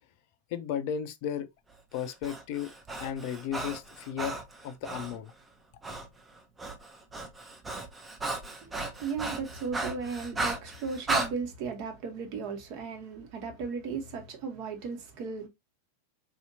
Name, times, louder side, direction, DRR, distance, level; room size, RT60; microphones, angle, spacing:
voice 1, 0.5-1.5 1.9-2.7 3.0-4.4 4.6-5.3, left 8 dB, 45° left, 0.5 m, -34 dB
Breathing, 2.0-5.2 5.8-6.1 6.4-11.3, right 2 dB, 10° right, 0.7 m, -35 dB
voice 2, 8.6-15.5, right 5 dB, 45° right, 1.1 m, -36 dB
4.1 x 2.8 x 2.7 m
figure-of-eight pair, 90°, 0 cm